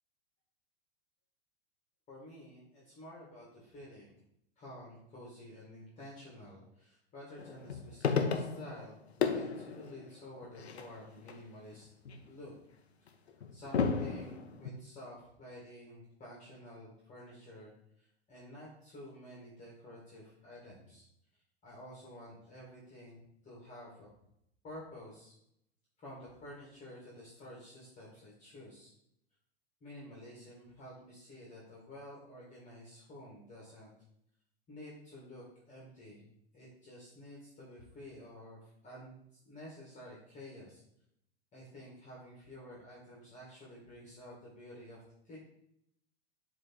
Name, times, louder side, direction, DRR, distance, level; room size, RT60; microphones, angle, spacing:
voice 1, 2.1-4.1 4.6-11.9 12.3-12.5 13.5-17.7 18.0-21.0 21.6-24.1 24.6-25.3 26.0-28.9 29.8-33.9 34.7-36.3 36.5-40.8 41.5-45.4, left 1 dB, 25° left, -5 dB, 2.2 m, -51 dB
sound 1, 7.4-8.9 9.2-11.3 11.7-12.3 13.1-14.7, left 5 dB, 80° left, 0.8 m, -34 dB
7.5 x 3.3 x 4.5 m, 0.76 s
hypercardioid pair, 100°, 32 cm